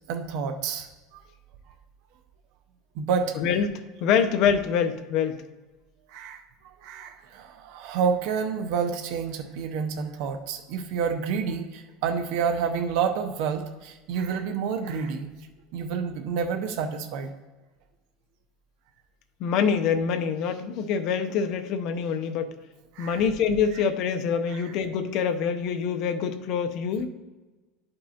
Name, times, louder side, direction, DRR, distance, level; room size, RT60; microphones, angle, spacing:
voice 1, 0.1-0.9 1.1-1.2 3.0-3.3 6.1-6.4 6.8-15.3 15.7-17.3 23.0-23.2 24.5-24.6, right 6 dB, 65° right, 5 dB, 0.6 m, -29 dB
voice 2, 3.3-5.4 19.4-22.6 23.0-27.1, left 7 dB, 50° left, 8 dB, 0.6 m, -25 dB
11.5 x 5.3 x 2.8 m, 1.2 s
supercardioid pair, 145°, 0 cm